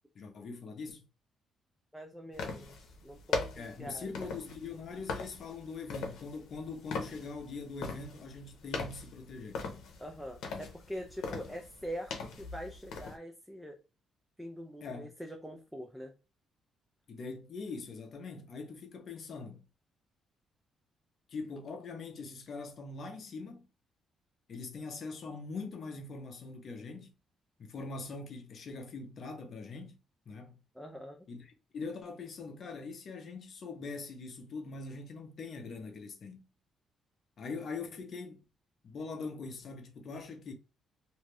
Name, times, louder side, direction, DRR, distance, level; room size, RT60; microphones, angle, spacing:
voice 1, 0.1-1.1 3.5-9.6 10.5-10.7 14.8-15.1 17.1-19.6 21.3-23.7 24.5-27.1 27.6-30.0 30.3-30.6 31.3-31.5 31.7-36.4 37.4-38.4 38.8-40.5, left 4 dB, 45° left, 0.6 m, -42 dB
voice 2, 1.9-4.3 10.0-13.8 14.4-16.1 30.7-31.3, equal, ahead, 0.4 m, -44 dB
sound 1, 2.3-13.2, left 4 dB, 85° left, 0.7 m, -40 dB
2.6 x 2.3 x 3.2 m
cardioid pair, 155°, 0 cm